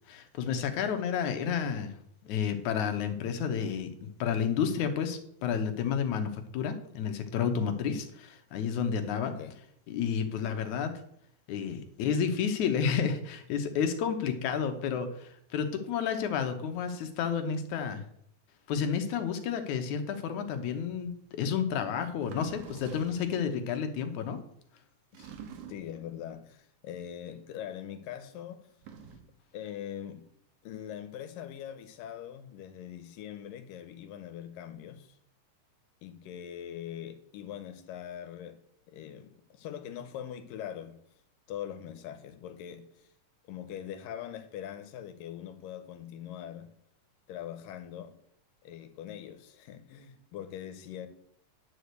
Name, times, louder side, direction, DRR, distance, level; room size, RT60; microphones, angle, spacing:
voice 1, 0.1-1.9 2.3-9.4 9.9-10.9 11.5-18.0 18.7-24.4, left 7 dB, 70° left, 2.4 m, -31 dB
sound 1, 22.2-23.4 25.1-26.0 28.7-29.4, right 6 dB, 75° right, 2.7 m, -47 dB
voice 2, 25.7-28.7 29.5-30.2 30.6-35.2 36.0-38.6 38.9-41.0 41.5-43.1 43.5-46.7 47.3-48.2 48.6-51.1, left 10 dB, 85° left, 2.6 m, -42 dB
10.0 x 4.9 x 8.1 m
omnidirectional pair, 3.8 m